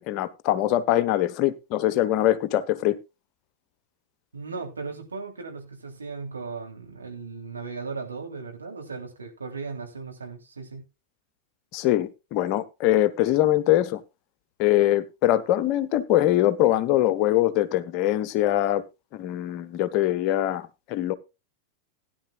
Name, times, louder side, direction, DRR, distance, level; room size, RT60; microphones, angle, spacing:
voice 1, 0.0-3.0 11.7-14.0 14.6-18.8 19.1-21.1, left 14 dB, 40° left, 1.0 m, -23 dB
voice 2, 4.3-10.8, right 4 dB, 75° right, 3.2 m, -37 dB
16.5 x 10.5 x 2.4 m
figure-of-eight pair, 90°, 0 cm